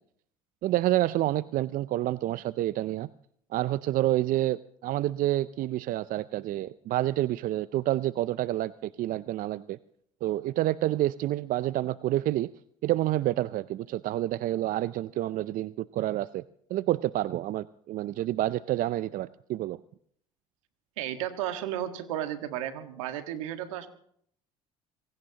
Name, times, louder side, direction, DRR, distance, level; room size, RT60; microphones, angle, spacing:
voice 1, 0.6-3.1 3.5-9.8 10.2-12.5 12.8-16.4 16.7-19.8, right 14 dB, 55° right, 17 dB, 0.5 m, -28 dB
voice 2, 21.0-23.9, right 11 dB, 85° right, 8 dB, 1.6 m, -33 dB
26.0 x 17.0 x 2.9 m, 0.66 s
hypercardioid pair, 65°, 17 cm